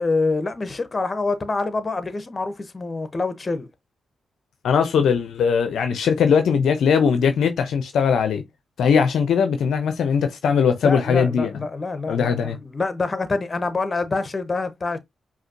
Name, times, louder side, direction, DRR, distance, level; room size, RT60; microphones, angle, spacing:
voice 1, 0.0-3.7 10.8-15.0, left 3 dB, 40° left, 0.9 m, -26 dB
voice 2, 4.6-8.4 8.8-11.5 12.1-12.6, left 6 dB, 75° left, 0.6 m, -20 dB
5.0 x 2.7 x 2.6 m
hypercardioid pair, 40°, 0 cm